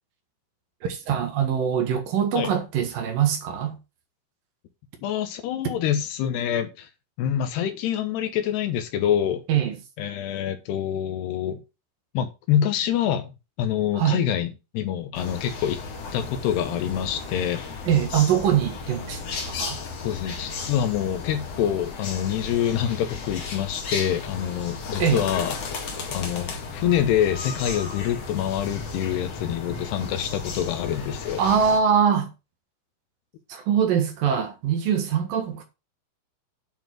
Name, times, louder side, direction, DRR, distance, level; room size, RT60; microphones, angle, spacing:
voice 1, 0.8-3.8 9.5-9.8 13.9-14.2 17.9-19.2 19.5-19.8 25.0-25.2 31.4-32.3 33.5-35.6, right 8 dB, 60° right, 2.8 m, -23 dB
voice 2, 5.0-6.9 7.2-9.4 10.0-11.6 12.1-13.3 13.6-15.8 16.1-17.6 20.0-25.6 26.1-31.4, left 10 dB, 70° left, 2.9 m, -26 dB
sound 1, 15.1-31.8, left 4 dB, 50° left, 2.2 m, -34 dB
9.2 x 5.8 x 5.9 m
omnidirectional pair, 5.4 m